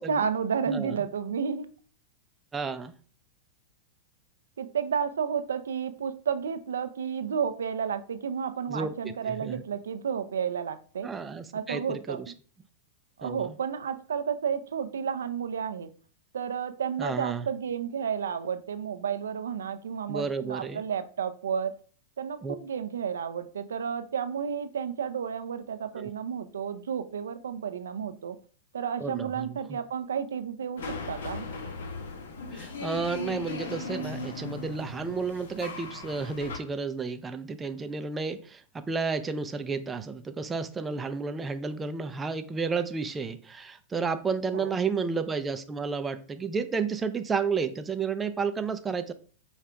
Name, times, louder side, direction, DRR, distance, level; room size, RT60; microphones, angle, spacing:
voice 1, 0.0-1.7 4.6-11.1 11.5-12.3 13.2-15.9 16.3-21.7 22.2-28.4 28.7-31.5 44.5-44.8, right 7 dB, 90° right, 11 dB, 0.4 m, -31 dB
voice 2, 2.5-2.9 8.7-9.6 11.0-12.3 13.2-13.5 17.0-17.5 20.1-20.8 22.4-22.6 26.0-26.1 29.0-29.8 32.5-49.1, right 5 dB, 15° right, 9 dB, 0.4 m, -32 dB
sound 1, 30.8-36.6, left 3 dB, 75° left, 1.0 m, -37 dB
5.1 x 2.4 x 4.3 m, 0.42 s
hypercardioid pair, 120°, 0 cm